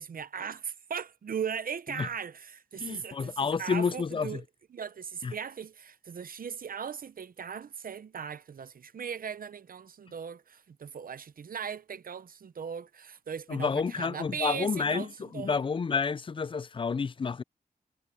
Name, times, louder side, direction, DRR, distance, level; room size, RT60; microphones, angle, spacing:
voice 1, 0.0-4.4 4.7-15.6, right 7 dB, 70° right, 0.7 m, -38 dB
voice 2, 2.8-4.4 5.2-5.3 13.5-15.1 15.3-17.4, left 5 dB, 35° left, 0.4 m, -29 dB
wide cardioid pair, 90°, 15 cm